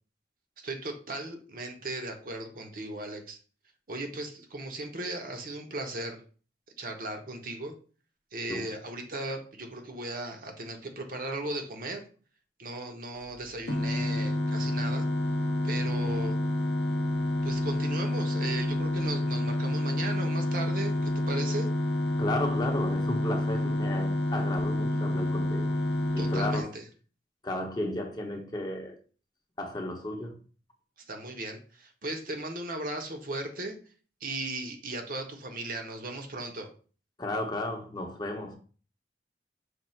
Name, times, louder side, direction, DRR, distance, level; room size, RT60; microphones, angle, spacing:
voice 1, 0.6-3.4 3.9-6.2 6.8-7.7 8.3-12.0 12.6-15.0 15.6-16.4 17.4-21.7 26.2-26.8 31.1-33.8 34.2-36.7, right 2 dB, 50° right, 0.8 m, -37 dB
sound 1, 13.7-26.6, left 1 dB, 75° left, 0.7 m, -28 dB
voice 2, 22.2-25.8 26.1-26.7 27.4-29.0 29.6-30.4 37.2-38.6, left 1 dB, 25° left, 0.7 m, -33 dB
5.2 x 2.4 x 4.2 m
head